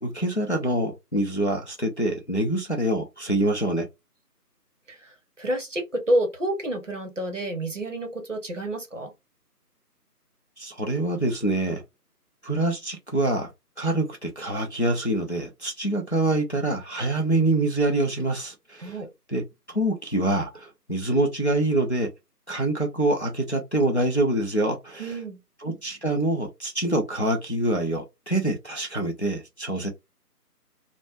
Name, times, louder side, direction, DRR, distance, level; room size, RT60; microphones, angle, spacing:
voice 1, 0.0-3.9 10.6-11.8 12.4-13.5 13.8-19.0 19.3-22.1 22.5-25.2 25.6-29.9, right 1 dB, 45° left, 0.4 m, -25 dB
voice 2, 4.9-9.1 18.8-19.1 25.0-25.4, right 1 dB, 50° right, 0.8 m, -29 dB
3.0 x 2.1 x 2.3 m
figure-of-eight pair, 175°, 48 cm